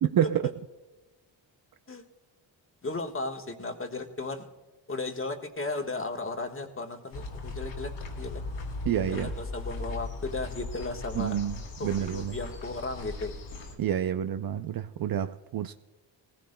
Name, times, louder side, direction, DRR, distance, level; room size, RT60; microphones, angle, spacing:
voice 1, 0.0-0.5 8.9-9.3 11.2-11.6 11.8-12.4 13.8-15.7, right 10 dB, 50° right, 0.5 m, -28 dB
voice 2, 2.8-4.5 4.9-7.9 8.2-8.4 9.1-11.4 11.8-13.3, left 3 dB, 25° left, 1.4 m, -35 dB
sound 1, 7.1-13.7, left 3 dB, 85° left, 2.7 m, -38 dB
19.0 x 16.0 x 2.2 m
cardioid pair, 65°, 46 cm